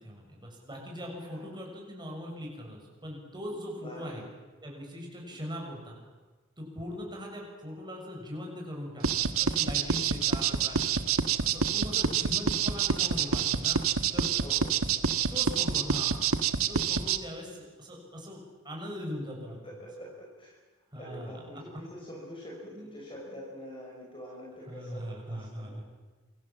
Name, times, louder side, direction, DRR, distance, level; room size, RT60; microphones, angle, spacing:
voice 1, 0.0-4.2 4.6-6.0 6.6-11.0 11.4-14.3 15.3-16.3 16.7-19.6 20.9-21.4 22.7-23.0 24.7-25.8, equal, 20° right, 0 dB, 7.1 m, -40 dB
voice 2, 3.5-4.2 5.2-5.5 14.4-14.7 19.6-20.5 21.0-25.8, equal, 25° left, -3 dB, 5.8 m, -45 dB
sound 1, 9.0-17.2, right 6 dB, 85° right, 1.4 m, -27 dB
28.0 x 24.0 x 7.6 m, 1.3 s
head